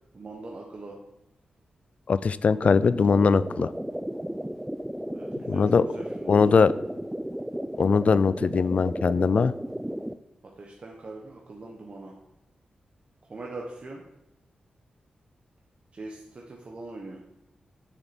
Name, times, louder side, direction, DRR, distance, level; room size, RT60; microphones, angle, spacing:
voice 1, 0.1-1.0 5.1-6.5 10.6-12.1 13.3-14.0 15.9-17.2, right 2 dB, 50° right, -1 dB, 1.3 m, -41 dB
voice 2, 2.1-3.7 5.5-5.8 6.3-6.7 7.8-9.5, left 5 dB, 55° left, 17 dB, 0.4 m, -21 dB
sound 1, 2.6-10.1, equal, 5° right, 0.4 m, -34 dB
8.5 x 6.5 x 4.4 m, 0.85 s
cardioid pair, 60°, 3 cm